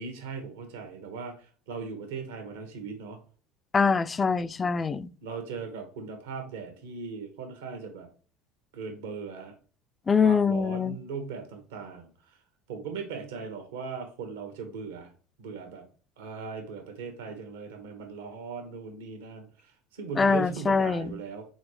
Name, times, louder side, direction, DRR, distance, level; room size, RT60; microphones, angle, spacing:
voice 1, 0.0-3.2 5.2-8.1 8.7-9.5 10.2-12.4 12.7-15.1 15.4-15.9 16.2-21.5, right 5 dB, 80° right, 1.2 m, -39 dB
voice 2, 3.7-5.1 10.1-11.0 20.2-21.2, left 5 dB, 25° left, 0.3 m, -24 dB
4.0 x 3.9 x 3.3 m
hypercardioid pair, 80°, 0 cm